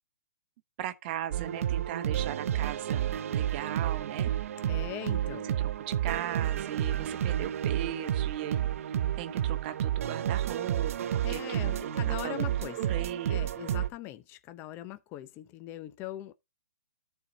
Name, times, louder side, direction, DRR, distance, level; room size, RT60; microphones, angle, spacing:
voice 1, 0.8-4.3 5.3-8.7 9.2-12.5 12.8-13.5, right 11 dB, 40° right, 1.1 m, -38 dB
sound 1, 1.3-13.9, right 11 dB, 60° right, 0.6 m, -30 dB
voice 2, 4.7-5.5 11.2-12.8 13.3-16.3, left 14 dB, 25° left, 0.7 m, -41 dB
13.5 x 4.6 x 3.9 m
hypercardioid pair, 140°, 9 cm